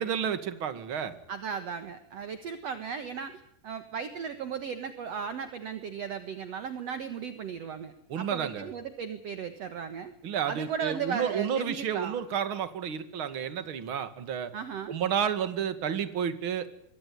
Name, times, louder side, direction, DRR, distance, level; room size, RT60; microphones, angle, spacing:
voice 1, 0.0-1.1 8.1-8.7 10.2-14.5 14.9-16.7, right 8 dB, 40° right, 11 dB, 2.0 m, -31 dB
voice 2, 1.3-10.1 10.5-12.2 14.5-15.0, right 7 dB, 60° right, 10 dB, 1.8 m, -36 dB
26.0 x 23.0 x 9.7 m, 0.69 s
omnidirectional pair, 4.9 m